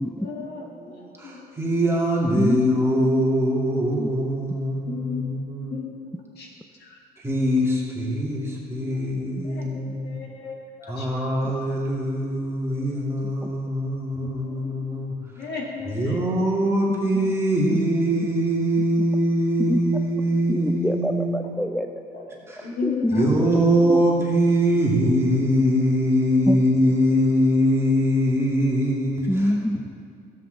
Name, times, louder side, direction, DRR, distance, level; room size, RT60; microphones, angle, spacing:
voice 1, 0.2-0.6 1.0-1.4 4.9-5.2 5.7-5.9 6.4-6.5 6.8-7.0 8.6-9.0 9.4-11.2 12.8-12.9 14.2-14.9 15.4-16.2 22.1-22.2 22.6-23.3, left 5 dB, 75° left, -1 dB, 2.0 m, -35 dB
voice 2, 0.7-5.7 7.2-10.2 10.9-15.1 15.9-21.4 22.5-22.7 23.1-29.3, equal, 15° right, -4 dB, 2.3 m, -22 dB
voice 3, 2.4-3.1 3.4-3.5 4.0-4.1 9.4-9.5 13.4-13.5 16.9-17.3 17.7-17.8 19.7-19.8 20.5-22.0 22.8-23.5 23.8-24.0 26.5-26.6 29.3-29.8, equal, 5° left, 5 dB, 0.3 m, -26 dB
12.5 x 8.1 x 3.9 m, 2.2 s
cardioid pair, 110°, 17 cm